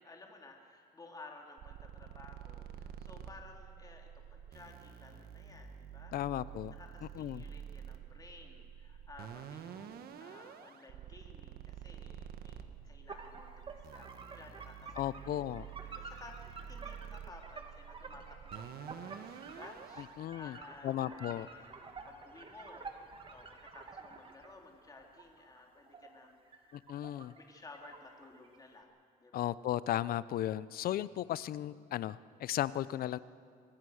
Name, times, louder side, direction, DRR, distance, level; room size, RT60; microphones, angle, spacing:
voice 1, 0.0-6.1 6.7-15.4 15.8-20.1 20.3-22.9 23.3-28.9 29.2-29.4, left 3 dB, 20° left, 1 dB, 3.1 m, -55 dB
sound 1, 1.6-20.2, right 8 dB, 65° right, 1.4 m, -49 dB
voice 2, 6.1-6.7 7.2-7.4 15.0-15.7 20.2-20.6 20.8-21.5 26.7-27.3 29.3-33.2, left 12 dB, 60° left, 17 dB, 0.7 m, -35 dB
sound 2, 13.1-24.5 25.0-27.5 27.7-28.6, right 4 dB, 30° right, 2.2 m, -50 dB
25.5 x 20.0 x 6.5 m, 2.3 s
cardioid pair, 110°, 17 cm